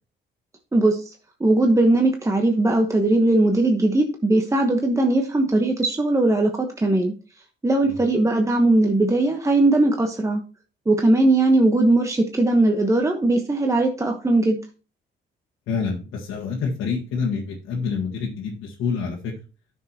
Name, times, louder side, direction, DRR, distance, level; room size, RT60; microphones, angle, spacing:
voice 1, 0.7-1.0 1.4-7.1 7.6-10.4 10.9-14.6, right 2 dB, 15° right, 3 dB, 1.1 m, -19 dB
voice 2, 15.7-19.3, left 5 dB, 90° left, -2 dB, 1.5 m, -27 dB
9.9 x 6.3 x 2.9 m, 0.34 s
cardioid pair, 90°, 20 cm